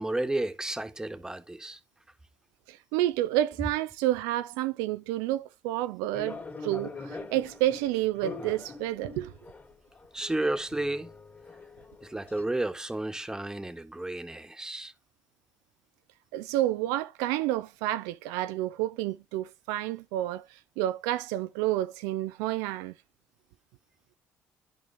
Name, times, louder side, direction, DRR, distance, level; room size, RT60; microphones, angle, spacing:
voice 1, 0.0-1.8 10.1-11.1 12.0-14.9, right 2 dB, 10° right, 1.4 m, -32 dB
voice 2, 2.7-9.3 16.3-22.9, right 14 dB, 85° right, 0.4 m, -30 dB
sound 1, 6.1-12.4, left 3 dB, 30° left, 2.7 m, -43 dB
10.5 x 5.1 x 3.4 m
hypercardioid pair, 60°, 6 cm